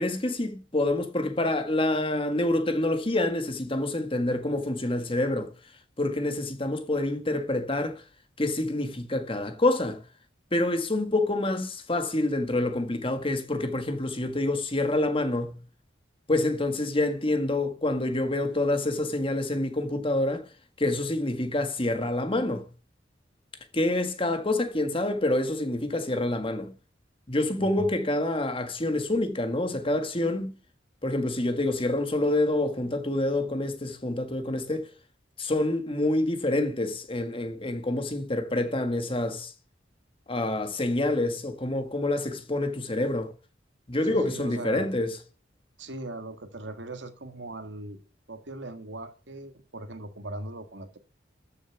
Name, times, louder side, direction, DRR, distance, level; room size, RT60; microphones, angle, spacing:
voice 1, 0.0-5.5 6.0-8.0 8.4-10.0 10.5-15.6 16.3-20.5 20.8-22.7 23.7-26.7 27.3-30.5 31.0-34.9 35.4-39.5 40.3-43.3 43.9-45.2, left 2 dB, 30° left, 1.7 m, -27 dB
voice 2, 44.1-44.9 45.8-48.0 48.3-51.0, right 2 dB, 75° right, 1.8 m, -39 dB
13.5 x 7.0 x 5.9 m
head